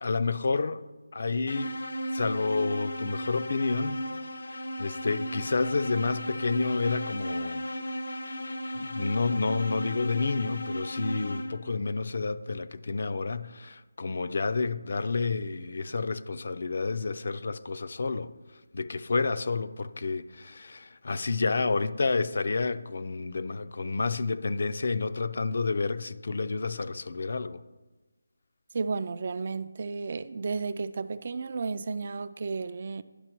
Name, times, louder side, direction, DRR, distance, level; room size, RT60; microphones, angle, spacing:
voice 1, 0.0-0.8 1.1-1.7 2.1-4.0 4.5-7.6 8.7-18.3 18.7-27.6, left 4 dB, 55° left, 0.4 m, -30 dB
sound 1, 1.5-11.8, equal, 75° left, 0.8 m, -35 dB
voice 2, 28.7-33.0, right 4 dB, 45° right, 0.3 m, -33 dB
10.0 x 5.8 x 4.5 m
figure-of-eight pair, 170°, 0 cm